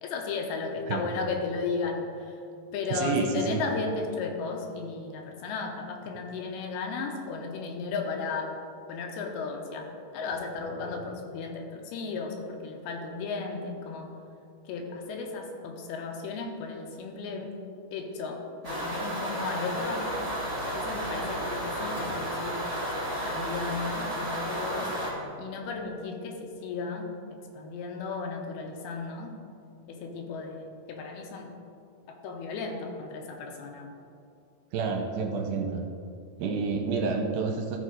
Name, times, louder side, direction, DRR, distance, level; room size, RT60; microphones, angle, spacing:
voice 1, 0.0-2.4 2.7-8.5 8.9-14.1 14.7-17.5 17.9-20.1 20.7-22.6 23.2-24.9 25.4-27.1 27.5-29.3 29.9-31.5 32.2-33.9, left 4 dB, 85° left, 2 dB, 2.7 m, -35 dB
voice 2, 2.9-3.6 34.7-35.8 36.4-37.8, right 4 dB, 80° right, 2 dB, 2.4 m, -29 dB
sound 1, 18.6-25.1, equal, 60° right, 0.3 m, -32 dB
13.5 x 4.7 x 3.9 m, 2.4 s
omnidirectional pair, 4.5 m